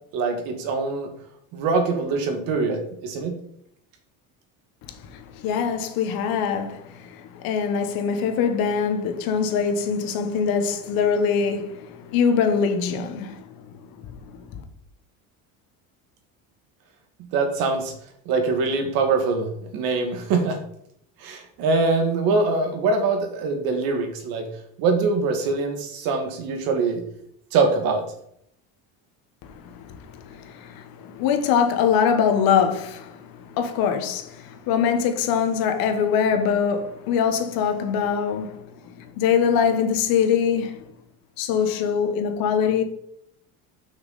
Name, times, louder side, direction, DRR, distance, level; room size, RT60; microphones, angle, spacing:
voice 1, 0.1-1.1 1.5-3.4 17.3-17.9 18.3-20.6 21.2-24.5 24.8-27.0 27.5-28.0, right 4 dB, 70° right, 1.8 m, -23 dB
voice 2, 4.8-13.6 13.9-14.6 29.4-40.9 41.4-42.8, left 7 dB, 70° left, 1.3 m, -23 dB
6.3 x 6.0 x 4.1 m
cardioid pair, 150°, 37 cm